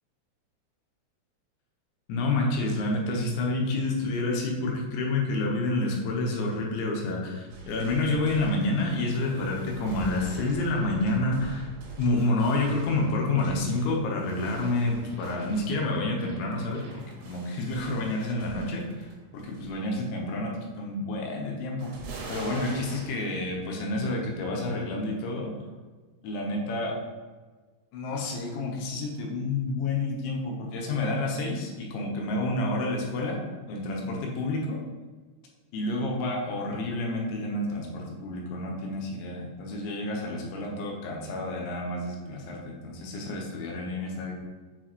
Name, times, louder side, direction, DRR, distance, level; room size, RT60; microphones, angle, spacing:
voice 1, 2.1-11.7 12.0-21.9 22.3-25.5 26.2-26.9 27.9-33.4 33.7-34.8 35.7-44.3, left 2 dB, 75° left, -1 dB, 3.1 m, -29 dB
sound 1, 7.5-19.1 19.4-19.9 21.8-23.2, right 3 dB, 75° right, 3.7 m, -44 dB
7.6 x 4.6 x 3.0 m, 1.4 s
omnidirectional pair, 5.8 m